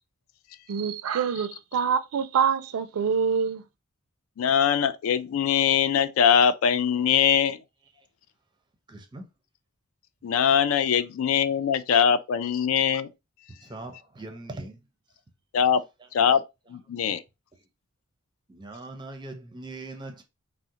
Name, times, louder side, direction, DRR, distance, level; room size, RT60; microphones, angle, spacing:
voice 1, 0.7-3.6, right 6 dB, 90° right, 0.4 m, -25 dB
voice 2, 4.4-7.6 10.2-13.1 15.5-15.8 16.1-16.4 16.7-17.2, left 8 dB, 70° left, 0.3 m, -22 dB
voice 3, 8.9-9.2 13.7-14.8 18.5-20.2, right 2 dB, 20° right, 0.5 m, -40 dB
3.6 x 2.1 x 2.8 m
head